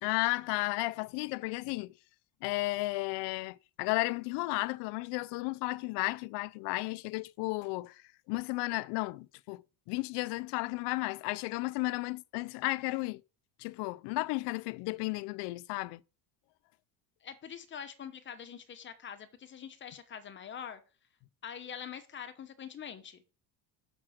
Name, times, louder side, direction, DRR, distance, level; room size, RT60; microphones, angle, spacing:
voice 1, 0.0-1.9 2.4-8.0 8.3-9.6 9.9-13.2 13.6-16.0, left 22 dB, 70° left, 0.5 m, -33 dB
voice 2, 17.2-20.8 21.4-23.2, left 8 dB, 25° left, 0.8 m, -44 dB
6.0 x 6.0 x 6.2 m
cardioid pair, 160°, 42 cm